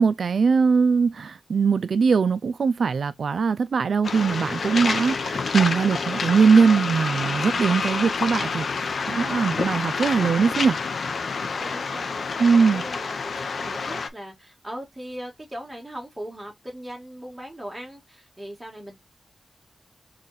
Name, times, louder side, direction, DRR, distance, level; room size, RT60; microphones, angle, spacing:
voice 1, 0.0-10.8 12.4-12.8, right 5 dB, 70° right, 0.3 m, -21 dB
Waves surf, 4.0-14.1, left 4 dB, 70° left, 0.6 m, -28 dB
voice 2, 11.5-19.0, right 1 dB, 10° right, 1.9 m, -39 dB
3.8 x 3.2 x 4.1 m
wide cardioid pair, 120°, 0 cm